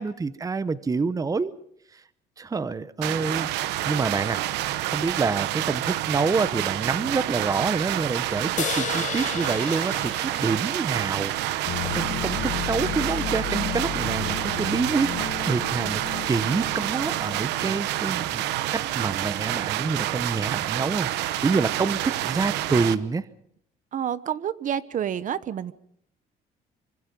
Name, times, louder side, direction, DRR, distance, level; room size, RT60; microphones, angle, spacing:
voice 1, 0.0-1.5 1.9-2.0 2.4-4.4 4.9-23.3, right 4 dB, 20° right, 14 dB, 0.9 m, -27 dB
sound 1, 3.0-22.9, right 14 dB, 90° right, 1.0 m, -28 dB
sound 2, 8.6-12.1, left 10 dB, 45° left, 0.8 m, -34 dB
sound 3, 11.7-18.1 18.4-18.6 19.8-19.9, left 11 dB, 70° left, 1.3 m, -34 dB
voice 2, 23.9-25.7, right 9 dB, 50° right, 15 dB, 1.0 m, -29 dB
25.0 x 25.0 x 5.3 m, 0.69 s
cardioid pair, 110°, 17 cm